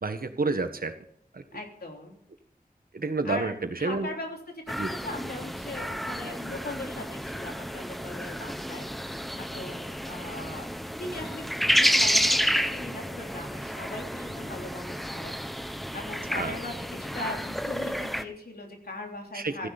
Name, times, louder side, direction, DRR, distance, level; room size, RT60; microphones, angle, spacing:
voice 1, 0.0-0.9 1.3-1.4 2.9-4.1 4.7-4.9 16.3-16.5 19.3-19.7, right 3 dB, 70° right, 8 dB, 1.5 m, -29 dB
voice 2, 1.5-2.2 3.2-3.5 3.8-10.7 11.0-19.7, left 2 dB, 90° left, 1 dB, 3.3 m, -40 dB
sound 1, 4.7-18.2, equal, ahead, 1.0 m, -30 dB
15.0 x 10.0 x 4.3 m, 0.67 s
wide cardioid pair, 55°, 16 cm